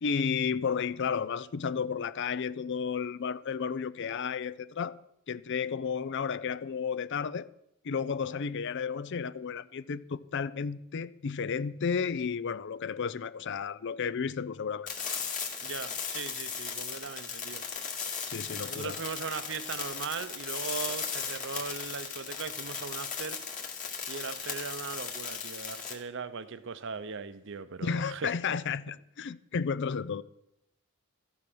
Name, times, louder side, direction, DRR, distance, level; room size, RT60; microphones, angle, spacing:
voice 1, 0.0-4.9 5.3-7.5 7.8-14.9 18.3-19.0 27.8-30.2, left 6 dB, 55° left, 0.5 m, -32 dB
sound 1, 14.9-25.9, left 6 dB, 35° left, 2.1 m, -37 dB
voice 2, 15.6-17.6 18.6-23.4 24.1-28.3, right 5 dB, 55° right, 0.7 m, -39 dB
13.5 x 10.0 x 6.1 m
head